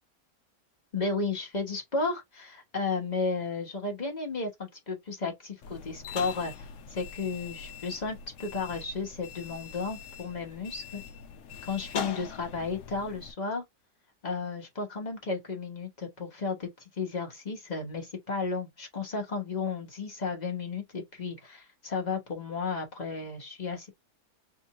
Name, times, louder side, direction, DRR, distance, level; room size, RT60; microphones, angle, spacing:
voice 1, 0.9-11.0 11.6-13.6 14.2-23.9, left 4 dB, 30° left, 1.1 m, -33 dB
sound 1, 5.6-13.3, left 7 dB, 65° left, 0.9 m, -42 dB
3.7 x 2.6 x 2.9 m
omnidirectional pair, 1.6 m